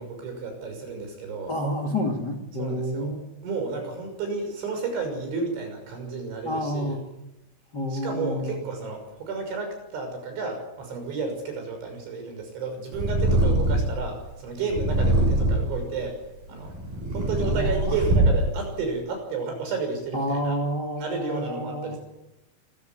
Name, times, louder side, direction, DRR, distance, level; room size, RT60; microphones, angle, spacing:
voice 1, 0.0-1.5 2.6-3.1 3.4-7.0 7.9-16.2 16.5-16.7 17.1-20.6 21.0-22.0, right 4 dB, 80° right, 5 dB, 8.5 m, -32 dB
voice 2, 1.5-3.3 6.4-7.0 7.7-8.6 17.5-18.0 20.1-22.0, equal, 30° left, 2 dB, 2.2 m, -29 dB
Purr, 12.9-14.0 14.7-15.8 16.5-18.6, right 1 dB, 45° right, 9.1 m, -22 dB
26.0 x 15.5 x 9.3 m, 0.95 s
omnidirectional pair, 5.3 m